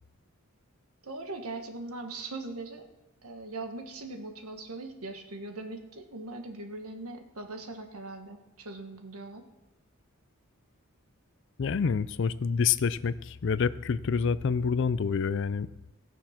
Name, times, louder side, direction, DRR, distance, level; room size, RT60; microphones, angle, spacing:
voice 1, 1.0-2.9 3.2-9.5, right 2 dB, 90° right, 5 dB, 1.4 m, -40 dB
voice 2, 11.6-15.9, left 6 dB, 55° left, 17 dB, 0.4 m, -27 dB
17.0 x 6.4 x 5.9 m, 1.0 s
head